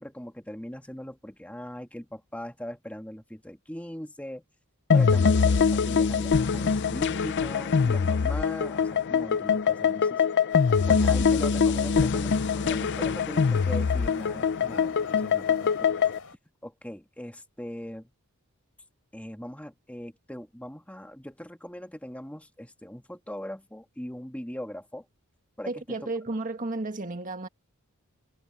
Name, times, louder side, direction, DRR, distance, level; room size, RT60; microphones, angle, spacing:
voice 1, 0.0-4.4 4.9-5.3 5.7-10.2 10.9-15.9 16.6-18.1 19.1-25.1 25.6-26.0, equal, 5° left, 1.9 m, -40 dB
sound 1, 4.9-16.2, left 6 dB, 55° left, 0.5 m, -23 dB
sound 2, 10.5-16.4, left 4 dB, 80° left, 4.1 m, -46 dB
voice 2, 25.6-27.5, right 2 dB, 35° right, 1.7 m, -33 dB
head